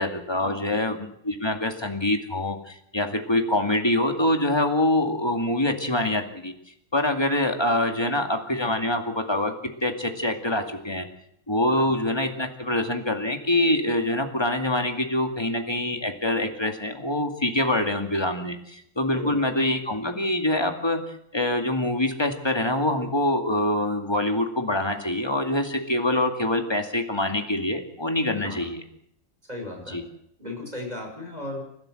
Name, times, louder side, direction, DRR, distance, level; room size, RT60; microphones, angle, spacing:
voice 1, 0.0-6.5 6.9-9.5 9.8-11.1 11.5-21.0 21.3-28.8 29.9-30.0, left 1 dB, 15° left, 5 dB, 2.2 m, -25 dB
voice 2, 29.5-30.0 30.4-31.6, left 1 dB, 20° right, 2 dB, 6.0 m, -36 dB
30.0 x 12.5 x 7.8 m, 0.75 s
omnidirectional pair, 2.1 m